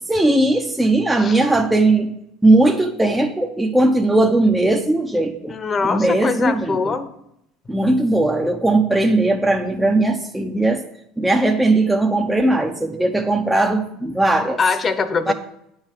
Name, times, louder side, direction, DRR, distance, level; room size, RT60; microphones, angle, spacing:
voice 1, 0.1-2.1 2.4-5.5 5.8-6.9 7.7-10.8 11.2-14.6 15.3-15.4, right 2 dB, 5° right, 2 dB, 0.7 m, -18 dB
voice 2, 5.5-7.1 14.6-15.3, left 4 dB, 30° left, 11 dB, 0.9 m, -22 dB
9.4 x 4.8 x 7.4 m, 0.78 s
supercardioid pair, 100°, 0 cm